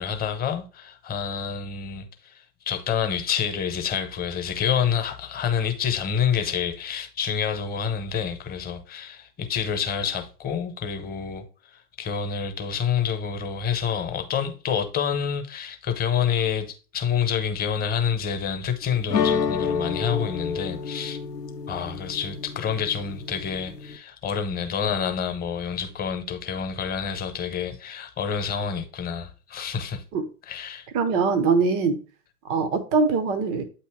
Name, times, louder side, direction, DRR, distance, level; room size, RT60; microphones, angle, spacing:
voice 1, 0.0-11.4 11.7-21.2 21.7-30.0 30.5-30.9, left 7 dB, 20° left, 1.0 m, -28 dB
sound 1, 19.1-24.0, left 6 dB, 90° left, 0.8 m, -29 dB
voice 2, 30.9-32.0 32.5-33.6, right 4 dB, 15° right, 0.3 m, -22 dB
8.3 x 2.9 x 4.7 m
hypercardioid pair, 110°, 47 cm